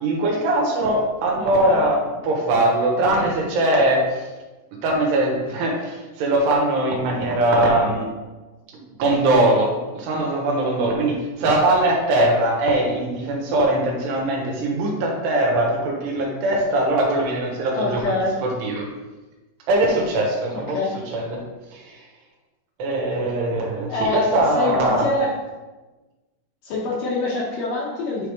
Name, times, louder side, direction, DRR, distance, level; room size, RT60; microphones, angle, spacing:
voice 1, 0.0-4.3 4.8-8.1 9.0-18.1 18.4-18.9 19.7-20.8 21.1-21.4 21.7-22.0 22.8-25.1, right 1 dB, 80° right, -1 dB, 3.5 m, -21 dB
voice 2, 1.4-1.8 17.7-18.4 20.5-20.9 23.9-24.2 24.5-25.3 26.6-28.3, left 2 dB, 65° left, -3 dB, 2.3 m, -25 dB
9.8 x 3.5 x 4.9 m, 1.2 s
omnidirectional pair, 4.8 m